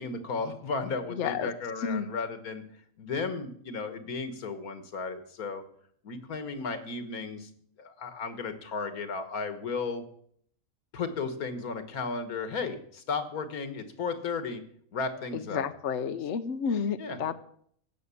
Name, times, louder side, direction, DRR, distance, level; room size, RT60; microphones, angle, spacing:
voice 1, 0.0-2.6 3.0-5.6 6.0-7.5 7.8-10.0 10.9-14.6 14.9-15.7 17.0-17.2, left 4 dB, 90° left, 10 dB, 1.9 m, -34 dB
voice 2, 1.1-1.5 1.8-2.1 15.3-17.4, left 7 dB, 60° left, 10 dB, 1.0 m, -31 dB
16.0 x 6.5 x 8.4 m, 0.64 s
omnidirectional pair, 1.5 m